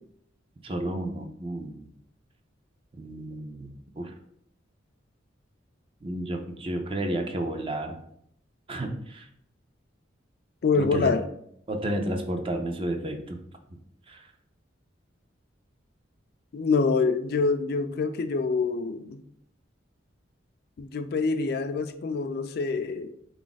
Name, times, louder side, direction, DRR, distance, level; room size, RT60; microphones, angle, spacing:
voice 1, 0.6-1.9 2.9-4.1 6.0-8.0 8.7-9.3 10.8-11.2 11.7-13.4 14.1-14.3, right 1 dB, 30° right, 5 dB, 0.4 m, -32 dB
voice 2, 10.6-11.2 16.5-19.2 20.8-23.1, left 4 dB, 55° left, 8 dB, 0.3 m, -26 dB
3.9 x 2.4 x 3.9 m, 0.70 s
head